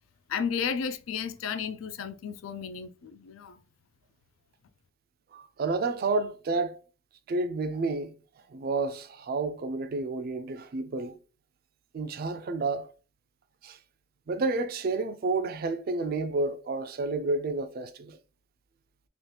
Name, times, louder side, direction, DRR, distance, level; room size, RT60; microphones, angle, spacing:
voice 1, 0.3-3.6, left 6 dB, 80° left, 0.4 m, -33 dB
voice 2, 5.3-6.8 7.3-8.1 8.5-11.2 11.9-12.9 13.6-13.8 14.3-18.2, right 3 dB, 45° right, 0.3 m, -30 dB
2.9 x 2.3 x 3.2 m
head